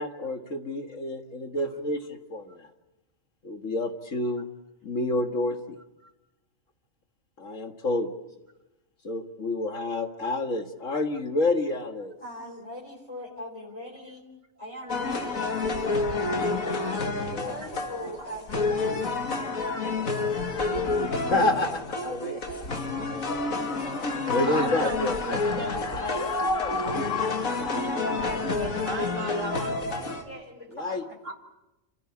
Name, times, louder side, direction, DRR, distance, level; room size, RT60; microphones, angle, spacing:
voice 1, 0.0-2.7 3.4-4.5 4.8-5.8 7.4-8.1 9.0-12.1 17.3-17.7 21.3-22.4 23.2-23.3 24.1-27.9 30.7-31.0, left 2 dB, 70° left, 6 dB, 2.2 m, -29 dB
voice 2, 12.2-14.3 14.6-20.9 21.4-21.7 23.2-23.7 27.7-28.9 29.6-31.2, left 1 dB, 20° left, -2 dB, 3.5 m, -41 dB
voice 3, 14.8-15.2 16.8-16.9 17.6-17.7 19.6-19.8 20.7-20.8 24.3-26.3 27.0-27.1 27.7-29.8 31.2-31.3, right 2 dB, 70° right, 5 dB, 2.6 m, -37 dB
sound 1, 14.9-30.2, left 3 dB, 85° left, 2.4 m, -29 dB
29.5 x 15.5 x 9.8 m, 1.0 s
omnidirectional pair, 1.4 m